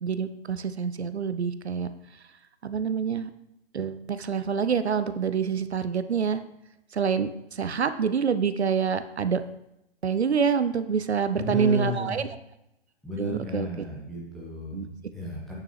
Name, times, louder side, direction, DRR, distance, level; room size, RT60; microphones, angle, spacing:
voice 1, 0.0-1.9 2.6-3.3 3.7-6.4 6.9-9.4 10.0-12.3 13.2-13.7 14.7-14.9, right 6 dB, 75° right, 12 dB, 0.6 m, -26 dB
voice 2, 11.4-12.2 13.0-15.5, equal, ahead, -5 dB, 1.1 m, -33 dB
9.1 x 6.8 x 3.3 m, 0.84 s
figure-of-eight pair, 120°, 33 cm